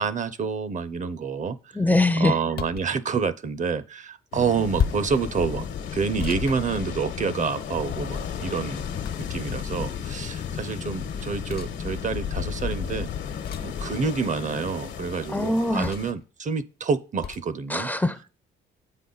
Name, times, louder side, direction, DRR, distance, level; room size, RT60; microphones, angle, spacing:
voice 1, 0.0-1.6 2.2-5.7 5.9-8.8 9.3-13.1 13.6-17.9, right 5 dB, 40° right, 0.6 m, -28 dB
voice 2, 1.7-2.4 15.3-15.9 17.7-18.3, left 2 dB, 10° left, 0.5 m, -22 dB
sound 1, 2.5-2.9 4.8-5.2 6.2-7.4 9.0-9.6 11.5-11.7 13.4-13.8 15.8-16.2 17.2-17.5, left 8 dB, 50° left, 0.7 m, -32 dB
sound 2, 4.3-16.1, left 7 dB, 70° left, 1.1 m, -33 dB
8.1 x 5.5 x 3.9 m
cardioid pair, 90°, 20 cm